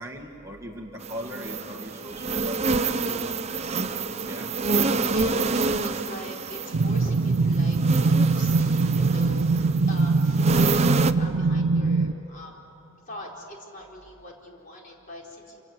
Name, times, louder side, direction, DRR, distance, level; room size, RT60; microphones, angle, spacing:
voice 1, 0.0-2.6 3.0-3.4 4.3-4.9 9.5-9.9, equal, 15° right, 0 dB, 1.8 m, -40 dB
sound 1, 1.0-11.1, right 3 dB, 30° right, 0.7 m, -28 dB
voice 2, 5.0-10.7 11.2-12.6 13.0-15.6, left 1 dB, 40° left, -1 dB, 4.6 m, -42 dB
sound 2, 6.7-12.1, right 3 dB, 70° right, 0.5 m, -22 dB
27.5 x 27.0 x 8.0 m, 3.0 s
head